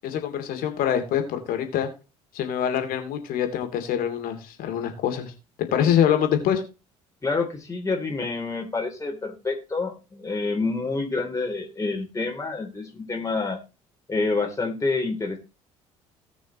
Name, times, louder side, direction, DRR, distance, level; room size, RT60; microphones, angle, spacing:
voice 1, 0.0-1.9 2.3-5.3 5.7-6.6, left 9 dB, 60° left, 5 dB, 2.8 m, -24 dB
voice 2, 7.2-13.6 14.1-15.4, left 3 dB, 20° left, 1 dB, 3.3 m, -28 dB
18.5 x 6.3 x 3.1 m, 0.30 s
figure-of-eight pair, 55°, 17 cm